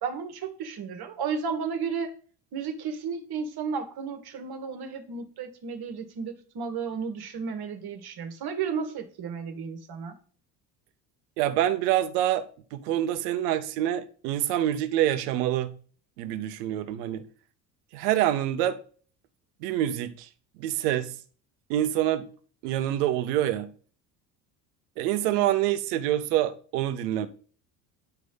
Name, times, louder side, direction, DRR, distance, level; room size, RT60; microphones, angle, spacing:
voice 1, 0.0-2.1 2.5-10.2, right 6 dB, 50° right, 1.8 m, -33 dB
voice 2, 11.4-12.4 12.7-15.7 16.2-17.3 17.9-18.8 19.6-20.3 20.6-21.1 21.7-22.3 22.6-23.7 25.0-27.3, right 12 dB, 70° right, 0.9 m, -26 dB
10.5 x 5.0 x 3.9 m
hypercardioid pair, 65°, 50 cm